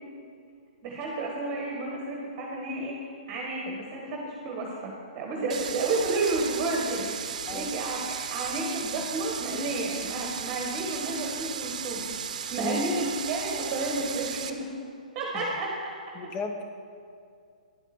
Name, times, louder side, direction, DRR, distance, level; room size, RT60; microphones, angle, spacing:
voice 1, 0.8-2.9 3.3-7.1 7.5-14.7 15.1-15.9, right 2 dB, 30° right, -2 dB, 1.3 m, -31 dB
sound 1, 5.5-14.5, right 7 dB, 60° right, 0.7 m, -35 dB
voice 2, 16.1-16.6, left 2 dB, 25° left, 5 dB, 0.9 m, -34 dB
10.5 x 8.0 x 4.3 m, 2.3 s
hypercardioid pair, 140°, 4 cm